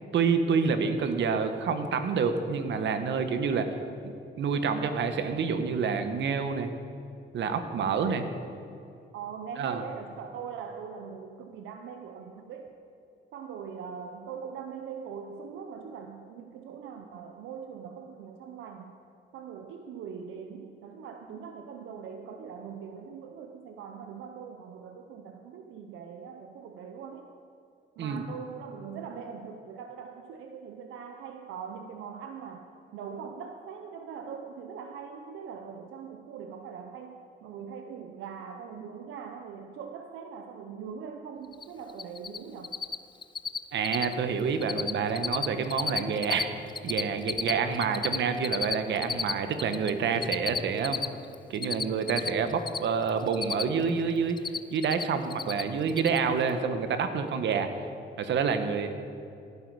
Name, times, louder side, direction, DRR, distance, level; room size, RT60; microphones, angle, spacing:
voice 1, 0.1-3.7 4.0-6.7 7.3-8.3 9.6-9.8 28.0-28.2 43.7-46.5 46.8-51.0 51.5-54.4 54.7-57.7 58.2-58.9, right 5 dB, 65° right, 8 dB, 1.1 m, -28 dB
voice 2, 9.1-12.9 13.3-19.0 19.3-27.3 28.0-42.8, right 6 dB, 85° right, 5 dB, 0.7 m, -42 dB
Cricket, 41.5-41.6 41.9-42.4 42.6-43.0 43.2-43.6 43.8-44.1 44.4-44.9 45.2-46.4 46.7-49.9 50.2-52.8 53.1-53.9 54.2-55.0 55.3-55.6 55.9-56.2, left 5 dB, 25° left, 0.3 m, -31 dB
15.5 x 8.2 x 4.8 m, 2.6 s
cardioid pair, 90°, 20 cm